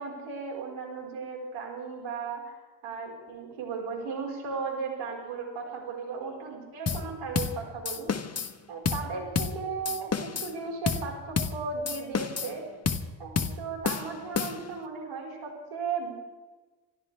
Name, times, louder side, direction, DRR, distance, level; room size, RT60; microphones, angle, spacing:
voice 1, 0.0-2.5 2.8-8.1 8.7-12.6 13.2-16.2, right 5 dB, 85° right, 0 dB, 5.1 m, -36 dB
sound 1, 6.9-7.1 7.3-7.6 7.8-8.5 8.8-9.1 9.3-9.6 9.8-10.5 10.9-11.1 11.4-11.6 11.9-12.5 12.9-13.1 13.4-13.6 13.8-14.8, left 5 dB, 30° left, 1.4 m, -30 dB
27.0 x 13.5 x 3.5 m, 1.3 s
cardioid pair, 75°, 48 cm